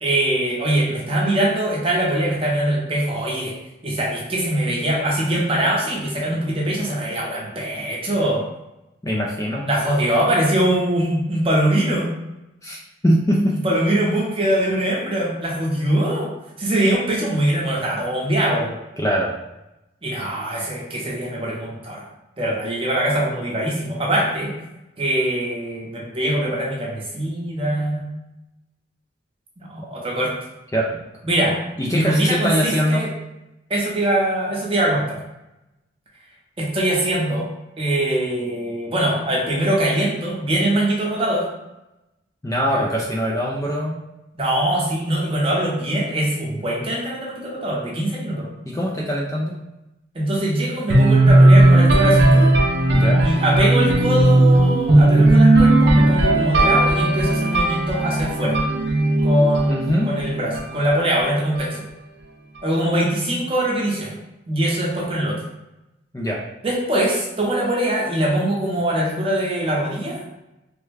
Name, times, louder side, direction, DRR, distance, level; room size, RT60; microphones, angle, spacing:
voice 1, 0.0-3.5 3.8-8.4 9.6-12.1 13.5-16.3 16.6-18.8 20.0-22.1 22.4-24.5 25.0-28.1 29.6-30.3 31.2-31.6 31.9-33.1 33.7-35.2 36.6-37.5 37.8-41.5 42.7-42.8 44.3-48.5 50.1-52.5 53.2-58.6 59.2-61.8 62.6-64.1 64.5-65.4 66.6-70.2, right 1 dB, 30° right, -4 dB, 0.7 m, -22 dB
voice 2, 9.0-9.7 12.6-13.6 19.0-19.3 30.7-31.0 31.8-33.1 42.4-44.0 48.7-49.6 52.9-53.3 59.7-60.1 66.1-66.4, equal, 15° left, -3 dB, 0.3 m, -22 dB
sound 1, 50.9-60.7, right 1 dB, 60° right, 0.5 m, -15 dB
3.3 x 2.1 x 3.3 m, 0.95 s
head